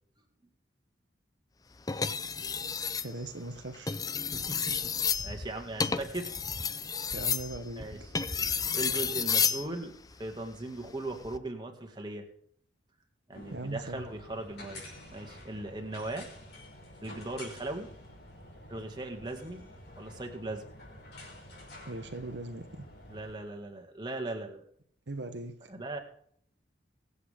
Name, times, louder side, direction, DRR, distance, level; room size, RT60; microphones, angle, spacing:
sound 1, 1.9-3.1 3.7-9.7 11.1-11.4, left 6 dB, 20° left, 0.5 m, -31 dB
voice 1, 3.0-4.0 7.1-7.9 13.5-14.0 21.9-22.8 25.1-25.7, right 2 dB, 70° right, 1.1 m, -39 dB
voice 2, 4.3-4.9 5.2-6.3 7.8-9.9 10.2-12.3 13.3-14.8 15.1-16.3 17.0-17.9 18.7-19.7 20.0-20.7 23.1-24.6 25.7-26.0, right 2 dB, 25° right, 2.1 m, -38 dB
sound 2, 13.3-23.4, left 1 dB, 55° left, 6.0 m, -49 dB
23.5 x 8.4 x 3.6 m
head